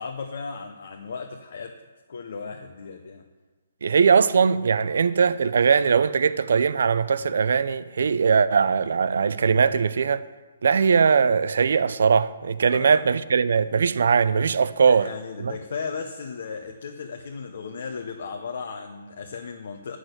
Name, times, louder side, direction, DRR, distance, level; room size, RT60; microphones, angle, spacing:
voice 1, 0.0-1.8 2.1-3.2 12.7-13.1 14.8-20.0, left 5 dB, 50° left, 0.8 m, -35 dB
voice 2, 3.8-10.2 10.6-15.1 15.4-15.5, right 6 dB, 55° right, 0.5 m, -20 dB
10.5 x 6.3 x 8.0 m
hypercardioid pair, 175°, 0 cm